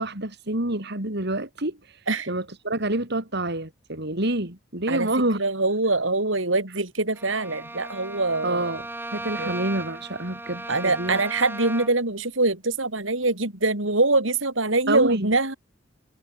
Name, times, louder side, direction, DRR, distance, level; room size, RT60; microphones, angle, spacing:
voice 1, 0.0-1.8 2.3-5.4 8.4-8.8 9.1-11.2 14.9-15.3, right 1 dB, 60° right, 4.7 m, -27 dB
voice 2, 5.4-8.7 9.4-9.6 10.7-15.6, right 2 dB, 80° right, 5.5 m, -24 dB
Bowed string instrument, 7.1-12.1, right 2 dB, 10° right, 3.5 m, -36 dB
head